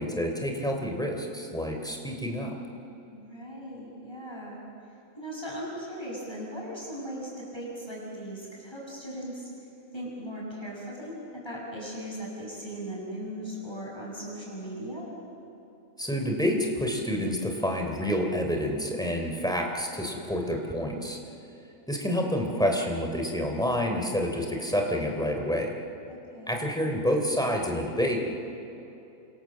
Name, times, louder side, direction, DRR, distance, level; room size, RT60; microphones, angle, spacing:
voice 1, 0.0-2.6 16.0-21.2 21.9-25.7 26.5-28.2, equal, 5° left, 2 dB, 3.3 m, -28 dB
voice 2, 3.1-4.6 5.2-9.5 9.9-15.1 26.1-26.6, equal, 20° left, -3 dB, 7.5 m, -38 dB
29.0 x 26.0 x 7.5 m, 2.8 s
omnidirectional pair, 1.4 m